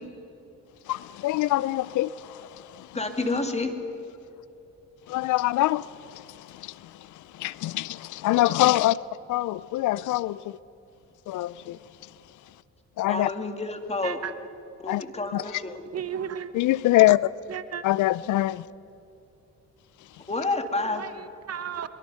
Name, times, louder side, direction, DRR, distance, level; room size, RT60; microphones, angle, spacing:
voice 1, 0.9-2.9 5.1-6.8 7.4-9.0 9.3-10.4 11.3-11.8 13.0-13.3 14.9-15.0 15.3-15.4 16.6-17.3 17.8-18.6, left 16 dB, 80° left, 0.5 m, -24 dB
voice 2, 2.9-3.7 8.4-8.5 13.1-14.2 14.8-15.8 20.3-21.0, left 2 dB, 20° left, 2.6 m, -29 dB
voice 3, 14.0-14.3 15.9-16.5 17.5-17.8 20.8-21.9, right 8 dB, 55° right, 1.1 m, -34 dB
23.5 x 23.0 x 5.6 m
cardioid pair, 90°, 30 cm